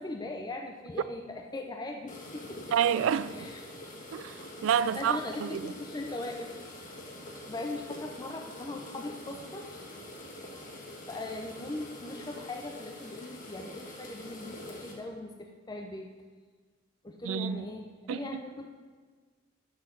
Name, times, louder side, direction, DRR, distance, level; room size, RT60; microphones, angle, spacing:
voice 1, 0.0-2.6 3.3-3.6 4.9-6.5 7.5-10.0 11.1-16.1 17.0-18.7, left 2 dB, 20° left, 0.5 m, -40 dB
sound 1, 2.1-14.9, left 1 dB, 45° left, 1.2 m, -45 dB
voice 2, 2.7-3.5 4.1-5.7 17.2-17.7 18.1-18.2, right 8 dB, 85° right, 0.3 m, -29 dB
6.4 x 6.0 x 5.6 m
head